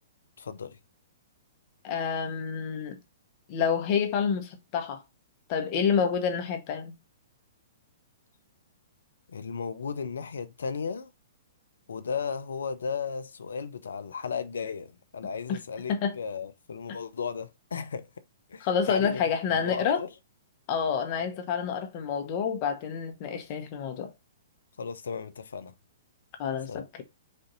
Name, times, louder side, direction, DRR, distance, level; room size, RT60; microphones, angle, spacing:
voice 1, 0.4-0.8 9.3-11.1 11.9-18.1 18.5-19.2 19.5-20.1 21.1-21.2 24.8-25.7 26.7-26.8, left 6 dB, 75° left, 0.6 m, -35 dB
voice 2, 1.8-3.0 3.5-5.0 5.5-6.9 15.5-15.6 15.9-16.1 18.6-20.0 20.7-24.1 26.4-27.0, left 7 dB, 40° left, 1.1 m, -28 dB
4.3 x 2.6 x 3.9 m
figure-of-eight pair, 120°, 0 cm